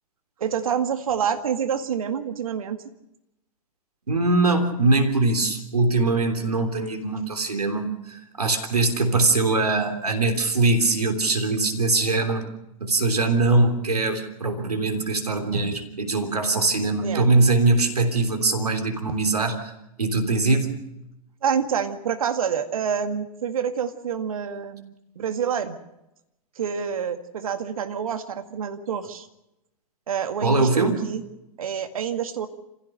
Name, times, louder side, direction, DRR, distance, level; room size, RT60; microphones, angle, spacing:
voice 1, 0.4-2.8 17.0-17.3 21.4-25.8 26.6-29.3 30.1-31.2 31.6-32.5, right 7 dB, 65° right, 8 dB, 2.0 m, -27 dB
voice 2, 4.1-12.5 12.8-19.7 20.0-20.8 30.4-31.0, right 3 dB, 80° right, 5 dB, 3.4 m, -22 dB
27.0 x 16.0 x 6.6 m, 0.89 s
figure-of-eight pair, 105°, 19 cm